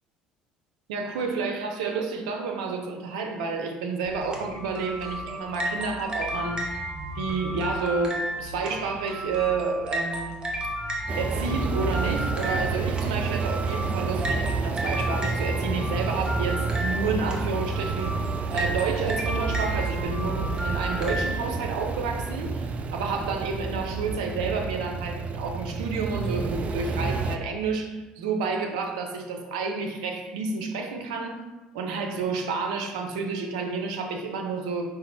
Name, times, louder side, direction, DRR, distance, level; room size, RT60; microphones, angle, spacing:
voice 1, 0.9-6.8 7.2-10.4 11.2-18.2 18.5-31.4 31.7-34.8, right 4 dB, 80° right, 3 dB, 0.6 m, -30 dB
sound 1, 4.1-21.3, equal, 25° right, 1.0 m, -33 dB
sound 2, 11.1-27.4, right 4 dB, 40° right, 0.4 m, -29 dB
5.2 x 2.5 x 4.0 m, 1.1 s
hypercardioid pair, 65°, 4 cm